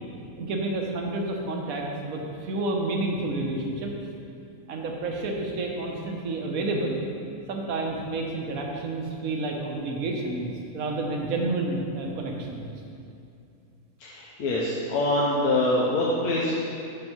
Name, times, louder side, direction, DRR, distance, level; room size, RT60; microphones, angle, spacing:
voice 1, 0.4-3.9 4.7-7.0 7.5-12.7, right 2 dB, 75° right, 1 dB, 1.3 m, -30 dB
voice 2, 14.0-16.5, left 1 dB, 85° left, -6 dB, 1.4 m, -24 dB
6.1 x 5.3 x 5.8 m, 2.6 s
omnidirectional pair, 1.5 m